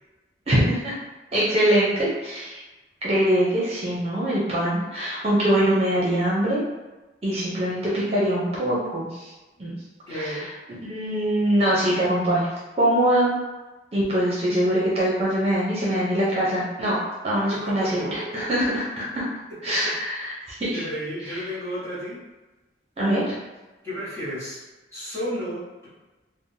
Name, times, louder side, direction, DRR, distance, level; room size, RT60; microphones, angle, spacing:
voice 1, 0.5-1.0 1.3-2.6 3.0-6.6 7.2-9.3 9.6-9.8 10.1-12.5 12.8-13.3 13.9-17.0 17.2-19.2 19.6-20.3 20.6-20.8 21.3-21.4 23.0-23.3, right 1 dB, 35° right, -7 dB, 0.6 m, -23 dB
voice 2, 10.1-10.5 17.5-18.4 19.7-19.8 20.7-22.2 23.8-24.6 24.9-25.9, equal, 15° left, -11 dB, 1.2 m, -32 dB
3.3 x 2.0 x 2.6 m, 1.1 s
head